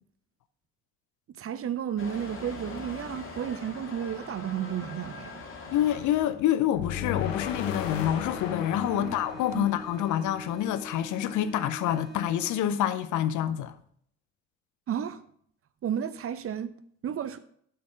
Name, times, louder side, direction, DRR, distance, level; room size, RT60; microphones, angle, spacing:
voice 1, 1.4-5.4 8.9-9.2 9.5-9.7 14.9-15.2 15.8-16.7 17.0-17.4, right 9 dB, 35° right, 0.7 m, -32 dB
Motor vehicle (road) / Engine starting / Accelerating revving vroom, 2.0-7.9, left 3 dB, 35° left, 2.0 m, -43 dB
voice 2, 5.7-13.7, left 11 dB, 50° left, 0.7 m, -27 dB
sound 1, 6.7-10.8, left 9 dB, 75° left, 0.9 m, -36 dB
sound 2, 6.9-12.9, right 2 dB, ahead, 2.0 m, -45 dB
12.0 x 4.4 x 4.9 m
figure-of-eight pair, 45°, 38 cm